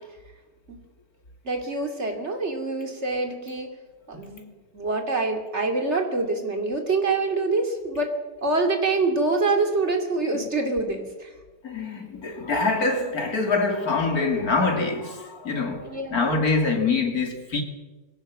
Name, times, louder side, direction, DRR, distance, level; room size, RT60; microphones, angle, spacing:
voice 1, 1.4-3.7 4.1-8.1 8.4-11.3 15.8-16.2, right 3 dB, 40° right, 3.2 m, -25 dB
voice 2, 11.6-17.6, left 3 dB, 55° left, 3.1 m, -25 dB
21.0 x 18.0 x 7.5 m
omnidirectional pair, 1.9 m